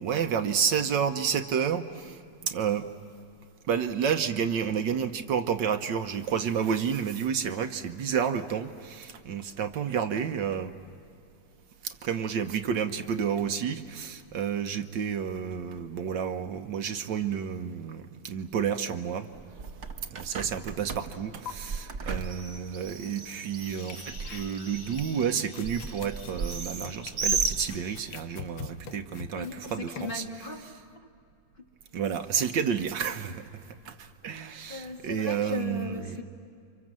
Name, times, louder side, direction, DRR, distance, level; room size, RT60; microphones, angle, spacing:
voice 1, 0.0-2.8 3.7-10.7 11.8-19.3 20.1-30.2 31.9-36.2, right 7 dB, 70° right, 7 dB, 1.6 m, -30 dB
Bird, 19.3-28.2, right 5 dB, 45° right, 1.2 m, -35 dB
sound 1, 21.1-21.2 21.5-21.6 23.7-24.8 25.2-30.2, left 5 dB, 85° left, 1.9 m, -45 dB
sound 2, 23.2-28.2, left 5 dB, 45° left, 0.9 m, -50 dB
voice 2, 29.3-30.8 31.6-31.7 34.2-36.2, left 3 dB, 30° left, 1 dB, 1.9 m, -38 dB
29.5 x 25.5 x 7.5 m, 2.5 s
omnidirectional pair, 2.1 m